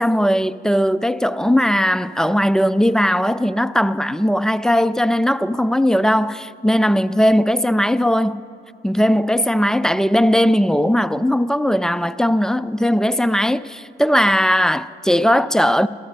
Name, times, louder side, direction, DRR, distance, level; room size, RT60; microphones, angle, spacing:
voice 1, 0.0-8.4 8.8-15.9, equal, 5° left, 0.3 m, -18 dB
14.0 x 12.5 x 6.6 m
cardioid pair, 90°, 20 cm